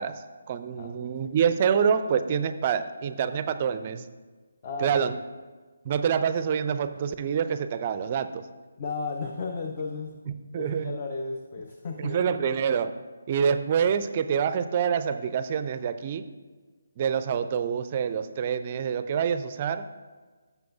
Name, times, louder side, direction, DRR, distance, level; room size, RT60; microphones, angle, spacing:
voice 1, 0.0-4.1 4.8-5.2 5.8-8.4 10.3-10.9 12.0-12.9 13.3-16.2 17.0-19.9, right 7 dB, 30° right, 11 dB, 0.4 m, -26 dB
voice 2, 4.6-5.0 8.8-10.2 10.6-12.3, left 3 dB, 35° left, 3 dB, 0.6 m, -34 dB
15.0 x 6.9 x 2.4 m, 1.4 s
figure-of-eight pair, 145°, 0 cm